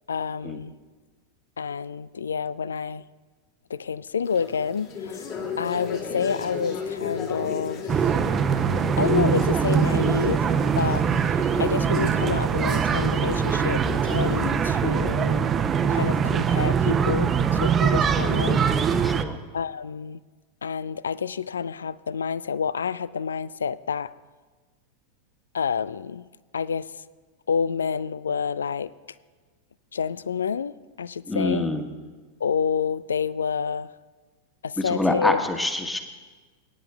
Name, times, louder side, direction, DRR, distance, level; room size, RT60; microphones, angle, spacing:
voice 1, 0.1-0.7 1.6-3.0 3.7-7.9 9.0-15.5 15.9-18.6 19.5-20.2 20.6-24.1 25.5-26.3 26.5-26.9 27.5-28.9 29.9-31.7 32.4-33.9 34.6-35.4, left 6 dB, 70° left, 20 dB, 0.3 m, -28 dB
sound 1, 4.2-14.8, left 6 dB, 40° left, 2.2 m, -36 dB
sound 2, 7.9-19.2, right 7 dB, 25° right, 0.6 m, -22 dB
voice 2, 19.0-19.4 31.3-31.9 34.8-36.0, left 2 dB, 5° left, 6 dB, 1.3 m, -25 dB
25.0 x 10.0 x 2.4 m, 1.4 s
figure-of-eight pair, 90°, 0 cm